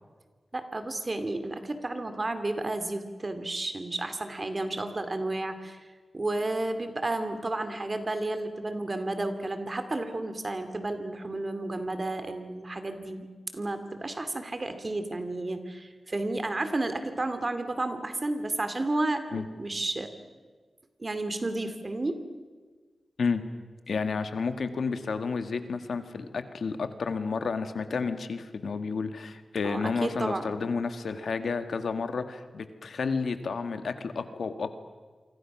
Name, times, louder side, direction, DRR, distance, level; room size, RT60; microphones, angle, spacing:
voice 1, 0.5-5.8 6.1-13.3 13.5-20.1 21.0-22.2 29.6-30.5, right 2 dB, 30° right, 9 dB, 2.4 m, -32 dB
voice 2, 23.9-34.7, left 5 dB, 85° left, 9 dB, 1.7 m, -31 dB
28.0 x 25.0 x 6.1 m, 1.4 s
wide cardioid pair, 120°, 0 cm